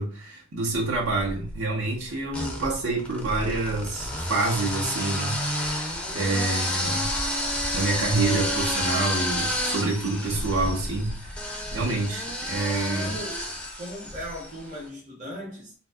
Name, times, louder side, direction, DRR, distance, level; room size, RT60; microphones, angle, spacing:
voice 1, 0.0-7.1 7.7-11.4 11.7-13.1, right 3 dB, 80° right, 0.8 m, -27 dB
sound 1, 1.0-1.6 2.3-14.6, left 1 dB, 5° left, 0.4 m, -30 dB
voice 2, 12.9-13.5 13.8-15.7, equal, 40° right, 0.8 m, -38 dB
2.6 x 2.2 x 2.3 m
head